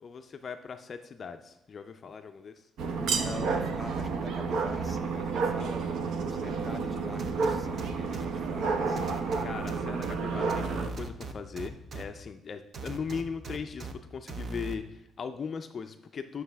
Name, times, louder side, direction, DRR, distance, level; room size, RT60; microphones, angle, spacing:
voice 1, 0.0-2.7 9.4-16.4, left 6 dB, 35° left, 8 dB, 0.4 m, -39 dB
sound 1, 2.8-10.9, right 4 dB, 65° right, 0.8 m, -30 dB
voice 2, 3.0-9.0, equal, ahead, 7 dB, 0.6 m, -43 dB
sound 2, 7.2-8.3 9.0-10.1 10.5-12.0 12.7-13.9 14.3-14.7, right 3 dB, 40° right, 0.7 m, -39 dB
9.5 x 6.1 x 3.4 m, 0.94 s
cardioid pair, 140°, 0 cm